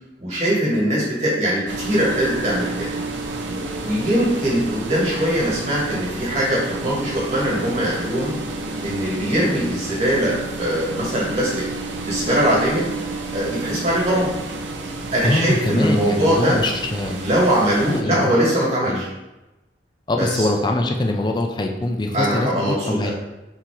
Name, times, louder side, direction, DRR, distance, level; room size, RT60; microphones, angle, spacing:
voice 1, 0.2-2.9 3.5-8.3 8.8-11.7 12.0-12.9 13.3-14.3 15.1-16.6 17.1-19.1 20.2-20.4 22.1-23.1, equal, 40° right, -6 dB, 1.5 m, -21 dB
sound 1, 1.7-18.0, right 3 dB, 90° right, 0.6 m, -31 dB
voice 2, 15.2-17.1 17.9-18.4 18.9-19.0 20.1-23.1, left 2 dB, 25° left, 3 dB, 0.4 m, -23 dB
3.7 x 2.8 x 4.5 m, 1.0 s
head